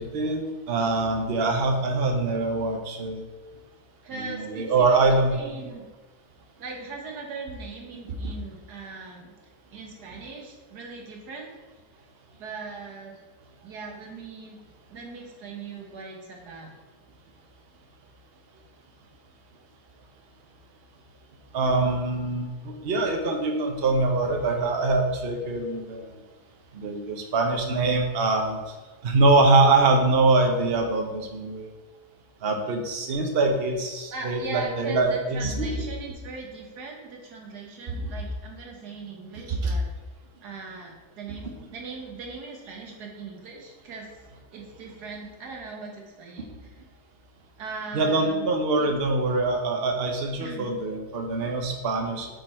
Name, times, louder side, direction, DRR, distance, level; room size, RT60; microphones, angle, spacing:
voice 1, 0.0-3.2 4.1-5.7 21.5-26.1 26.7-28.6 29.0-31.7 32.4-35.9 38.0-38.1 39.5-39.8 47.9-52.3, right 3 dB, 45° right, 3 dB, 0.9 m, -24 dB
voice 2, 4.0-5.9 6.6-9.3 9.7-11.6 12.4-13.2 13.6-14.6 14.9-16.7 34.1-39.9 40.4-44.1 44.5-46.8 47.6-48.5 48.8-48.9 50.4-50.7, right 4 dB, 85° right, 0 dB, 1.8 m, -39 dB
6.9 x 3.9 x 4.4 m, 1.2 s
omnidirectional pair, 1.7 m